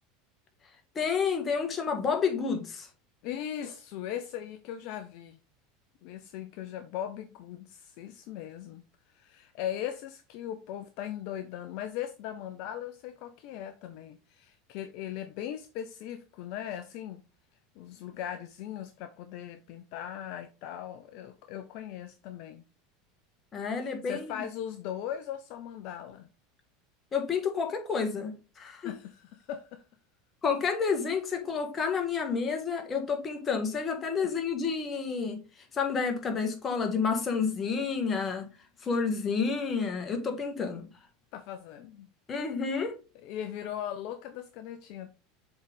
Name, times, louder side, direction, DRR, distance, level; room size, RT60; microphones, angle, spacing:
voice 1, 0.9-2.9 23.5-24.4 27.1-28.9 30.4-35.4 35.7-38.4 38.8-40.9 42.3-43.0, left 5 dB, 30° left, 1.7 m, -30 dB
voice 2, 3.2-5.4 6.0-17.2 17.8-22.6 23.8-26.3 28.8-29.8 34.2-34.3 41.3-42.1 43.2-45.1, left 10 dB, 60° left, 0.6 m, -39 dB
7.0 x 3.9 x 3.6 m
hypercardioid pair, 90°, 0 cm